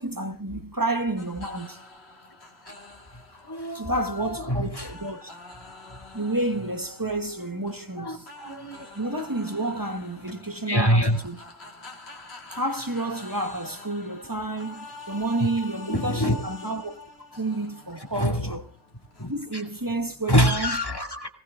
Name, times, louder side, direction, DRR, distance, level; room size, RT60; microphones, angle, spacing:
voice 1, 0.0-1.8 3.7-5.4 6.1-8.3 8.9-11.4 12.5-17.0 17.3-18.6 19.3-20.8, right 2 dB, 15° right, 1.1 m, -30 dB
sound 1, 1.2-20.7, left 2 dB, 50° left, 2.5 m, -46 dB
voice 2, 3.4-4.9 8.0-8.9 10.7-11.2 15.9-16.4 18.1-18.5 19.2-19.6 20.3-21.3, equal, 15° left, 2.4 m, -25 dB
20.5 x 19.0 x 3.6 m
omnidirectional pair, 1.4 m